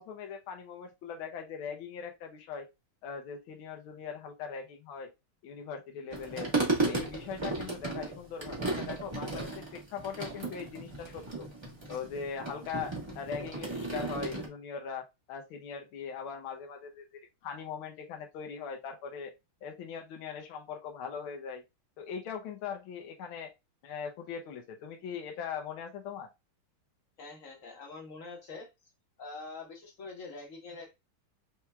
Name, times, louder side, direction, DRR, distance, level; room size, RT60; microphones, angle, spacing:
voice 1, 0.0-2.7 3.0-5.1 5.4-6.5 6.8-11.5 11.9-19.3 19.6-21.6 22.0-23.5 23.8-26.3, left 6 dB, 75° left, 1.6 m, -40 dB
sound 1, 6.1-14.5, right 3 dB, 15° right, 1.0 m, -35 dB
voice 2, 27.2-28.7 29.2-31.0, left 3 dB, 45° left, 1.4 m, -45 dB
5.6 x 2.9 x 2.3 m
omnidirectional pair, 2.3 m